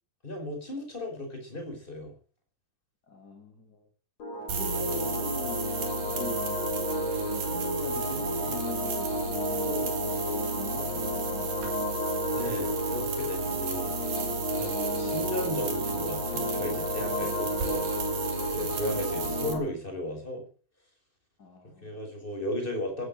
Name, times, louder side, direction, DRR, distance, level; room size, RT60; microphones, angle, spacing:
voice 1, 0.2-2.1 12.3-13.9 14.5-17.9 18.5-20.4 21.8-23.1, left 1 dB, 15° left, 3 dB, 5.3 m, -35 dB
voice 2, 3.1-3.8 4.5-5.7 6.0-6.4 7.2-9.1 9.5-10.0 10.3-11.5 18.9-19.1 21.4-22.0, left 3 dB, 30° left, 4 dB, 2.9 m, -42 dB
sound 1, 4.2-19.6, equal, 50° left, 5.9 m, -32 dB
sound 2, 4.5-19.5, right 5 dB, 80° right, 4.6 m, -34 dB
15.0 x 11.5 x 7.8 m, 0.43 s
omnidirectional pair, 3.9 m